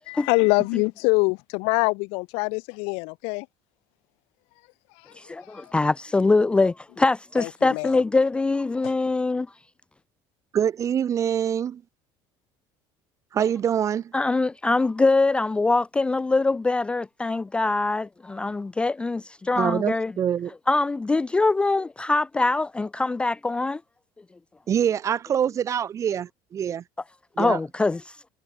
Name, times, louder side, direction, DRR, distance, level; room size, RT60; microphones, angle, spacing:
voice 1, 0.1-3.4 7.4-7.9 8.8-8.9, left 32 dB, 85° left, 1.5 m, -24 dB
voice 2, 5.2-9.5 14.1-20.1 20.7-23.8 27.4-28.2, left 3 dB, 10° left, 0.5 m, -23 dB
voice 3, 10.5-11.8 13.3-14.1 19.6-20.5 24.7-26.8 27.4-27.6, right 9 dB, 30° right, 0.8 m, -25 dB
cardioid pair, 160°, 10 cm